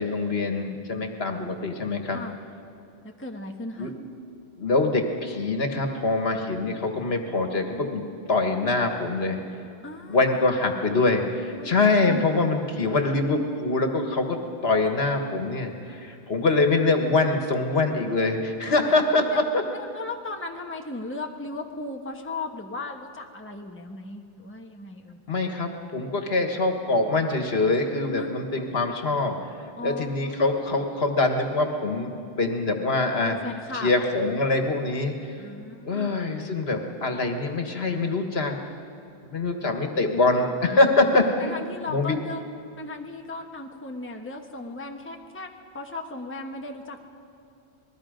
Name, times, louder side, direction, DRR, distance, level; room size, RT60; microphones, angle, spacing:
voice 1, 0.0-2.2 3.8-3.9 4.6-9.4 10.1-19.3 25.3-29.4 29.8-33.4 33.7-35.3 35.9-38.6 39.2-41.5 41.9-42.2, left 3 dB, 65° left, 4 dB, 1.8 m, -24 dB
voice 2, 3.0-3.9 9.8-10.2 11.5-12.2 18.8-18.9 19.3-19.4 19.8-25.2 28.2-28.3 29.8-30.4 33.2-33.9 35.4-36.1 41.4-42.4 42.8-47.0, left 2 dB, 10° left, 3 dB, 1.1 m, -36 dB
27.0 x 20.5 x 5.2 m, 2.6 s
omnidirectional pair, 1.1 m